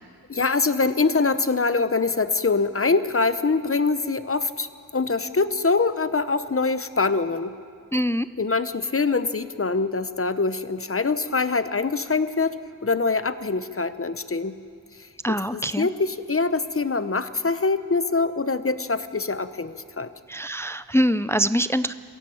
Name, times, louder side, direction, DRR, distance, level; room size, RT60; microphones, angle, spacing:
voice 1, 0.3-4.7 4.9-7.5 8.4-14.6 15.0-20.1, left 4 dB, 35° left, 12 dB, 0.9 m, -24 dB
voice 2, 7.9-8.3 15.2-15.9 20.3-21.9, equal, 5° left, 13 dB, 0.4 m, -23 dB
22.5 x 16.0 x 8.7 m, 2.2 s
wide cardioid pair, 70°, 37 cm